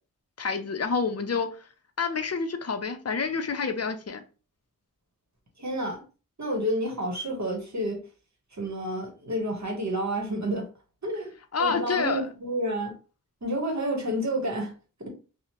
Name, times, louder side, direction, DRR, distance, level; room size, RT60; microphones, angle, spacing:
voice 1, 0.4-1.6 2.0-4.2 11.5-12.2, left 5 dB, 45° left, 0.5 m, -28 dB
voice 2, 5.6-6.0 6.4-8.0 8.5-10.7 11.0-11.3 11.6-12.9 13.4-14.7 15.0-15.1, right 1 dB, 55° right, 1.0 m, -29 dB
2.8 x 2.0 x 2.8 m
wide cardioid pair, 40°, 35 cm